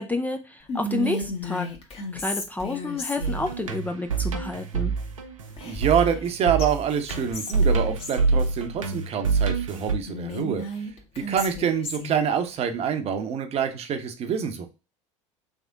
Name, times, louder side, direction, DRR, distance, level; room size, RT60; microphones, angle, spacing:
voice 1, 0.0-1.7 2.1-4.9, left 2 dB, 10° left, 6 dB, 0.5 m, -29 dB
Whispering, 0.7-3.5 5.6-6.3 6.6-6.7 7.1-8.2 10.0-12.2, left 1 dB, 35° left, 1.4 m, -33 dB
sound 1, 3.2-9.9, right 4 dB, 85° right, 0.7 m, -26 dB
voice 2, 5.6-10.6 11.3-14.7, right 7 dB, 40° right, 7 dB, 0.8 m, -26 dB
3.5 x 3.5 x 3.7 m, 0.30 s
hypercardioid pair, 75°, 17 cm